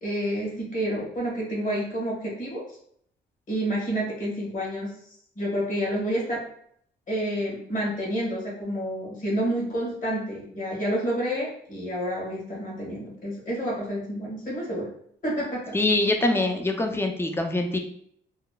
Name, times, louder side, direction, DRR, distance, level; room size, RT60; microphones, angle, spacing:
voice 1, 0.0-2.6 3.5-4.9 5.3-6.4 7.1-14.9 15.2-15.8, equal, 40° left, -4 dB, 1.3 m, -29 dB
voice 2, 15.7-17.8, left 2 dB, 10° left, 4 dB, 0.4 m, -24 dB
2.9 x 2.1 x 2.2 m, 0.66 s
cardioid pair, 90°, 20 cm